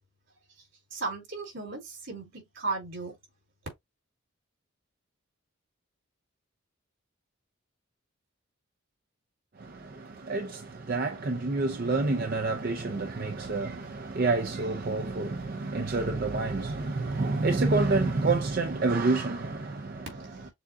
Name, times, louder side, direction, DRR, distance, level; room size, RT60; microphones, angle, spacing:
voice 1, 0.9-3.1, right 3 dB, 70° right, 3.1 m, -35 dB
voice 2, 10.3-10.6 10.9-19.9, right 3 dB, 45° right, 0.5 m, -28 dB
6.9 x 2.4 x 2.6 m
head